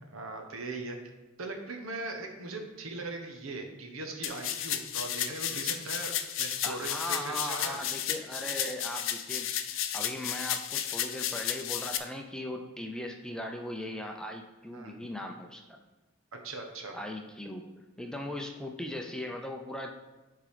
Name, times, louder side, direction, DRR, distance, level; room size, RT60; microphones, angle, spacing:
voice 1, 0.1-1.0 1.4-7.8 14.7-15.0 16.4-17.1, right 2 dB, 90° right, 3 dB, 1.2 m, -39 dB
sound 1, 4.2-12.0, left 10 dB, 70° left, 0.5 m, -33 dB
voice 2, 6.6-15.8 16.9-17.7 18.0-19.9, left 1 dB, 5° left, 2 dB, 0.5 m, -39 dB
10.0 x 3.8 x 5.0 m, 1.2 s
head